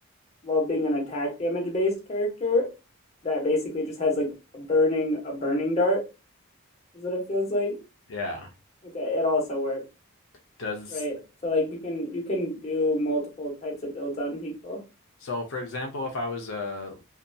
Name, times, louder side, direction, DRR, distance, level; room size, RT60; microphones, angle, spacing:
voice 1, 0.4-2.7 3.2-6.0 6.9-7.8 8.9-9.8 10.9-11.2 11.4-14.8, left 2 dB, 30° left, 0.9 m, -27 dB
voice 2, 8.1-8.5 10.6-11.0 15.2-17.0, left 3 dB, 70° left, 0.5 m, -33 dB
2.6 x 2.2 x 2.6 m
head